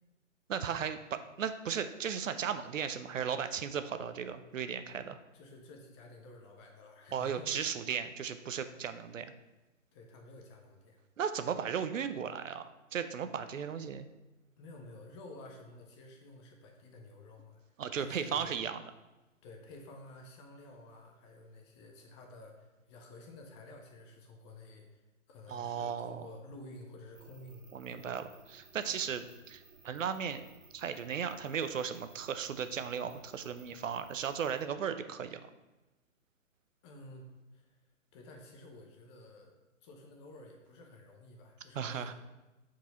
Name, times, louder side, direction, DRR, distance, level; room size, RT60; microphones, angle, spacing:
voice 1, 0.5-5.2 7.1-9.3 11.2-14.1 17.8-18.8 25.5-26.2 27.7-30.5 30.7-35.4 41.7-42.1, right 7 dB, 75° right, 10 dB, 0.6 m, -36 dB
voice 2, 5.3-7.6 9.9-11.0 14.6-17.6 18.0-18.5 19.4-28.3 29.1-29.2 36.8-37.8 38.1-39.6 39.8-42.1, left 2 dB, 20° left, 2 dB, 0.8 m, -52 dB
sound 1, 27.1-34.6, right 4 dB, 55° right, 2.0 m, -60 dB
5.9 x 4.8 x 4.1 m, 1.1 s
hypercardioid pair, 135°, 39 cm